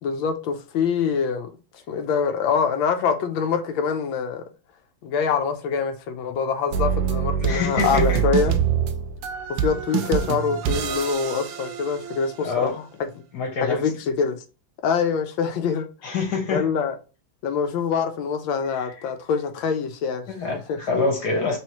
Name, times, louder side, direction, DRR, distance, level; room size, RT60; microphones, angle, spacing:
voice 1, 0.0-1.5 1.9-4.4 5.0-8.6 9.5-13.2 13.6-14.4 14.8-15.9 16.5-17.0 17.4-20.3 20.5-20.8, left 6 dB, 85° left, 1.4 m, -25 dB
sound 1, 6.7-12.5, right 9 dB, 80° right, 1.3 m, -25 dB
voice 2, 7.4-8.2 12.4-12.8 13.3-13.8 16.0-16.6 18.8-18.9 20.3-21.6, left 4 dB, 60° left, 1.5 m, -25 dB
3.8 x 3.1 x 2.9 m
omnidirectional pair, 2.1 m